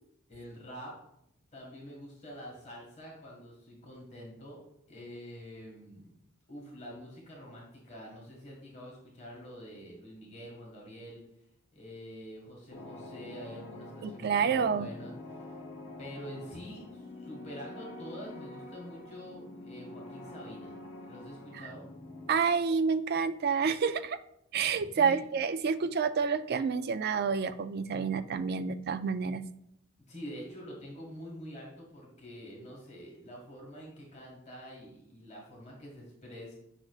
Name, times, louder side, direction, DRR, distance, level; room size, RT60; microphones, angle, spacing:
voice 1, 0.3-0.9 1.5-4.6 4.9-6.1 6.5-11.2 11.7-15.6 16.0-20.7 21.1-21.9 24.9-25.2 30.1-36.6, equal, 35° left, -3 dB, 1.8 m, -46 dB
sound 1, 12.7-22.3, left 2 dB, 55° left, 0.9 m, -46 dB
voice 2, 14.0-14.9 21.5-21.7 22.3-24.2 24.5-29.4, right 5 dB, 50° right, 11 dB, 0.3 m, -29 dB
8.8 x 5.8 x 2.4 m, 0.77 s
head